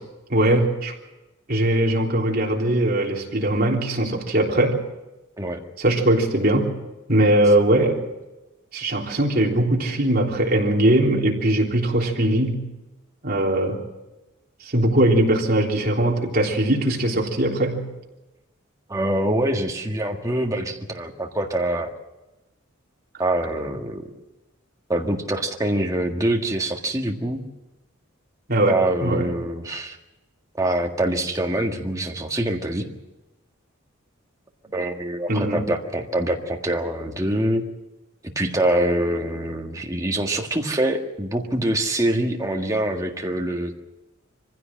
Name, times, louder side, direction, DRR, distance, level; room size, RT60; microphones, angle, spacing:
voice 1, 0.3-0.9 1.5-4.8 5.8-6.7 7.1-8.0 8.7-12.6 13.2-13.8 14.6-17.8 28.5-29.3 35.3-35.6, right 1 dB, 45° right, -2 dB, 3.5 m, -20 dB
voice 2, 18.9-21.9 23.2-24.1 24.9-27.4 28.7-30.0 30.6-32.9 34.7-37.6 38.3-43.8, right 1 dB, 15° right, 2 dB, 1.7 m, -24 dB
23.5 x 15.5 x 7.6 m, 1.0 s
head